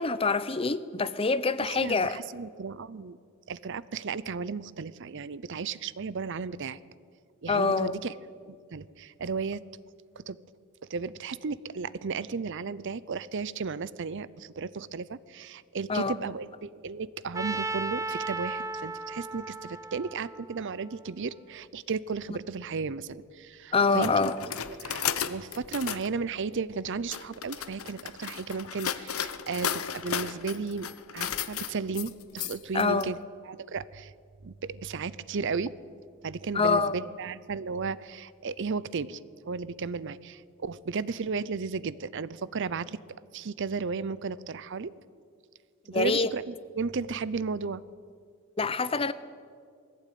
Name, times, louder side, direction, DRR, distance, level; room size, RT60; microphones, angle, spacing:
voice 1, 0.0-2.2 7.5-8.0 15.9-16.1 23.7-24.4 32.7-33.1 36.5-37.0 45.9-46.3 48.6-49.1, left 4 dB, 25° left, 15 dB, 0.6 m, -25 dB
voice 2, 1.6-3.2 3.5-6.8 7.4-8.2 8.5-9.6 10.2-10.4 10.9-24.3 24.7-30.9 31.1-33.2 33.4-34.1 34.4-35.7 36.2-39.2 39.5-43.0 43.3-44.9 45.9-47.8, right 5 dB, 55° right, 18 dB, 0.6 m, -34 dB
Trumpet, 17.3-21.4, right 2 dB, 15° right, 0.7 m, -36 dB
sound 1, 24.0-26.1 26.9-33.0, left 8 dB, 70° left, 0.9 m, -34 dB
20.5 x 15.5 x 9.3 m, 2.2 s
head